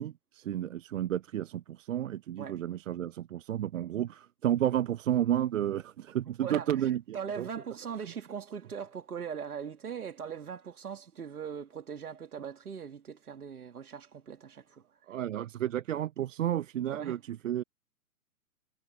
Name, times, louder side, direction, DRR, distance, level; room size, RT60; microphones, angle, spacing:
voice 1, 0.0-7.5 15.1-17.6, right 11 dB, 55° right, 0.7 m, -32 dB
voice 2, 7.1-14.8 16.9-17.2, right 7 dB, 70° right, 2.4 m, -40 dB
figure-of-eight pair, 125°, 46 cm